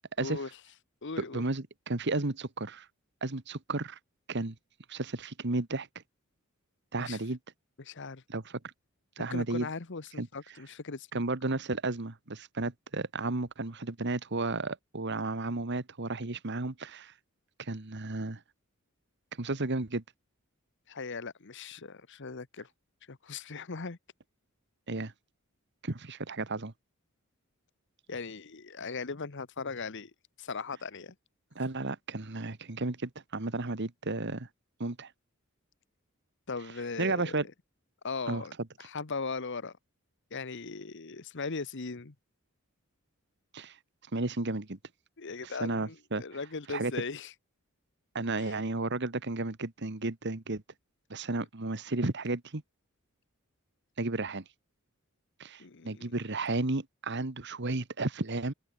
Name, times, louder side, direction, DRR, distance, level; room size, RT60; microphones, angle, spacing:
voice 1, 0.2-0.5 1.0-1.4 7.0-7.2 7.8-8.2 9.2-11.2 20.9-22.7 23.1-24.0 28.1-30.1 30.4-31.1 36.5-37.4 38.0-38.5 38.8-39.7 40.3-42.1 45.2-47.3 48.4-48.5 55.6-56.1, left 4 dB, 55° left, 1.1 m, -39 dB
voice 2, 1.2-2.9 3.2-4.0 4.3-4.5 4.9-5.9 6.9-7.4 8.3-8.5 9.2-9.7 10.2-10.3 11.1-17.1 17.6-18.4 19.4-20.0 24.9-25.1 25.8-26.7 31.5-34.5 34.8-35.1 37.0-37.4 38.3-38.4 43.5-43.8 44.1-44.8 45.4-46.2 46.7-46.9 48.1-50.6 51.1-52.6 54.0-54.4 55.4-58.5, right 2 dB, 55° right, 1.5 m, -33 dB
head